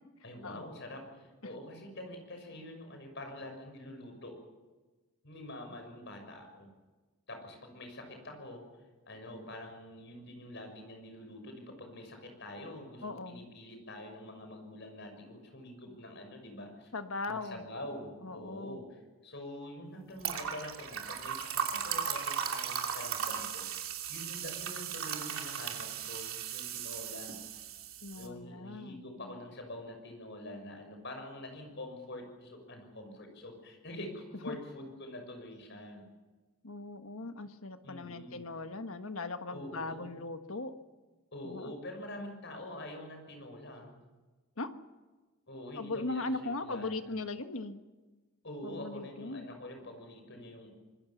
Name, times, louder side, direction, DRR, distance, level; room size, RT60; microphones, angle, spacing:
voice 1, 0.2-4.4 5.2-6.7 7.3-8.6 9.1-16.9 17.3-27.3 28.1-36.0 37.8-38.5 39.5-40.1 41.3-44.0 45.5-47.2 48.4-50.7, left 1 dB, 50° left, 5 dB, 6.4 m, -46 dB
voice 2, 13.0-13.4 16.9-17.6 18.2-18.8 28.0-29.4 34.5-34.6 36.6-40.7 41.4-41.7 44.6-44.7 45.8-47.8 48.6-49.5, left 3 dB, 70° left, 8 dB, 1.5 m, -39 dB
sound 1, 20.2-28.3, right 8 dB, 70° right, 3.0 m, -37 dB
25.5 x 21.5 x 7.2 m, 1.2 s
head